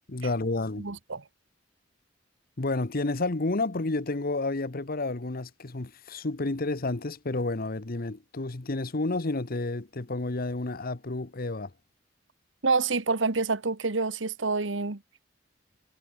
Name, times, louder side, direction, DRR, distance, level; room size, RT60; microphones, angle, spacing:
voice 1, 0.1-0.9 2.6-11.7, left 2 dB, 50° left, 1.1 m, -30 dB
voice 2, 0.8-1.2 12.6-15.0, right 4 dB, 85° right, 1.5 m, -27 dB
head